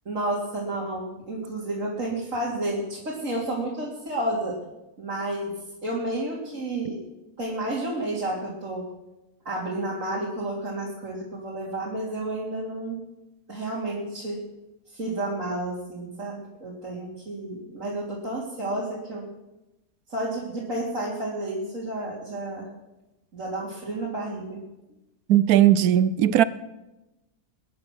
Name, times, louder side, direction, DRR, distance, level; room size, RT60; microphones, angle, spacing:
voice 1, 0.1-4.6 5.0-5.5 5.8-7.0 7.4-8.8 9.5-13.0 13.5-14.4 14.9-19.3 20.1-22.7 23.3-24.6, right 1 dB, 50° right, 3.7 m, -31 dB
voice 2, 25.3-26.4, right 11 dB, 70° right, 1.1 m, -18 dB
21.5 x 10.5 x 6.3 m
omnidirectional pair, 1.7 m